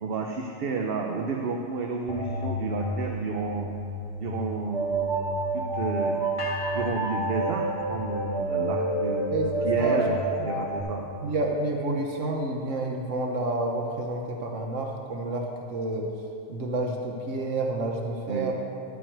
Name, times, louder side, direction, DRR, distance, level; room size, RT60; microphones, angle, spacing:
voice 1, 0.0-3.7 4.2-6.2 6.7-11.0 18.3-18.5, right 4 dB, 55° right, 2 dB, 0.8 m, -31 dB
sound 1, 2.1-10.8, right 2 dB, 25° right, 1.1 m, -29 dB
sound 2, 6.4-8.5, left 2 dB, 80° left, 2.1 m, -39 dB
voice 2, 11.2-16.1 16.5-18.5, right 2 dB, 80° right, 1 dB, 1.3 m, -29 dB
12.0 x 8.7 x 4.6 m, 2.8 s
omnidirectional pair, 1.3 m